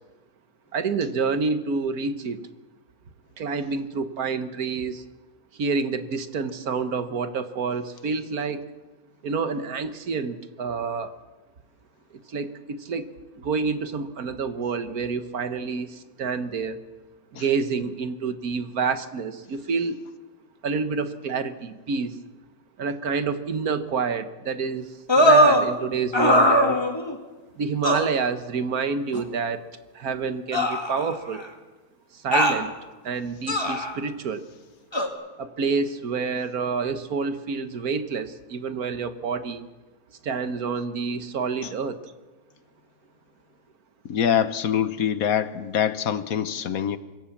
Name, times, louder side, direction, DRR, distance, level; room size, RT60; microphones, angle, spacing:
voice 1, 0.7-2.5 3.4-5.0 5.5-8.6 9.2-11.2 12.3-13.0 13.4-16.8 17.3-20.0 20.6-22.2 22.8-26.8 27.6-29.6 29.9-31.4 32.1-32.7 33.0-34.4 35.4-39.6 40.2-42.1, right 5 dB, 70° right, 10 dB, 1.7 m, -28 dB
sound 1, 25.1-25.7 26.1-27.2 27.8-28.1 29.1-29.2 30.5-31.4 32.3-32.6 33.5-33.9 34.9-35.1, equal, 15° left, 2.1 m, -20 dB
voice 2, 44.1-47.0, left 9 dB, 65° left, 13 dB, 1.3 m, -24 dB
25.0 x 16.5 x 7.3 m, 1.2 s
omnidirectional pair, 1.7 m